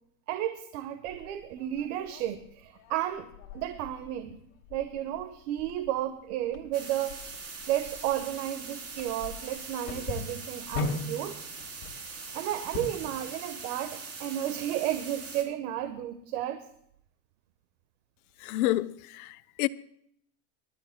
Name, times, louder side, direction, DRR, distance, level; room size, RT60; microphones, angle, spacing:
voice 1, 0.3-3.3 3.5-4.4 4.7-7.2 7.7-11.4 12.3-16.6, right 12 dB, 70° right, 1.3 m, -33 dB
sound 1, 1.1-13.2, left 4 dB, 55° left, 2.8 m, -41 dB
sound 2, 6.7-15.4, right 4 dB, 30° right, 3.5 m, -42 dB
voice 2, 18.4-19.7, left 17 dB, 70° left, 0.8 m, -29 dB
26.0 x 12.5 x 2.2 m
supercardioid pair, 135°, 46 cm